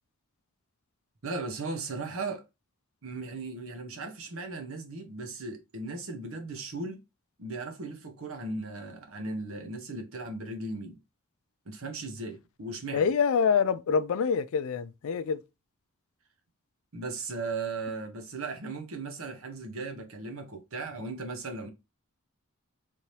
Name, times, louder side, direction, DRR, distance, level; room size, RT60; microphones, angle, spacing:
voice 1, 1.2-2.4 3.0-7.0 7.4-11.0 11.7-13.1 16.9-21.7, right 3 dB, 70° right, 1.0 m, -37 dB
voice 2, 12.9-15.4, left 6 dB, 65° left, 0.4 m, -26 dB
3.5 x 2.8 x 3.1 m
head